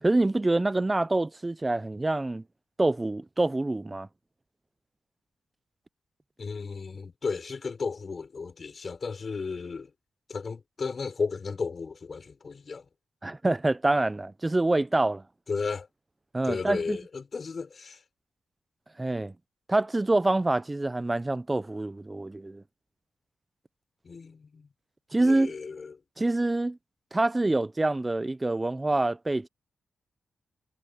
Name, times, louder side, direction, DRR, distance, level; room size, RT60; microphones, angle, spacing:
voice 1, 0.0-2.4 2.8-4.1 13.2-15.2 16.3-17.0 19.0-19.3 19.7-22.6 25.1-25.5 26.2-26.8 27.1-29.5, right 2 dB, 20° right, 0.8 m, -26 dB
voice 2, 6.4-9.9 10.3-12.9 15.5-15.9 16.4-18.0 24.0-24.7 25.2-26.0, left 4 dB, 45° left, 3.8 m, -34 dB
cardioid pair, 95°, 0 cm